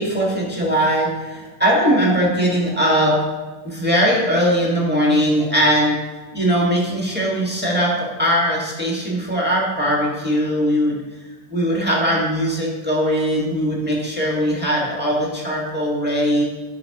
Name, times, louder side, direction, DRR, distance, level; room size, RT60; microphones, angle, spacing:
voice 1, 0.0-3.2 3.6-6.0 6.3-11.0 11.5-16.4, equal, 5° right, -5 dB, 1.4 m, -20 dB
13.5 x 5.6 x 3.0 m, 1.3 s
omnidirectional pair, 2.3 m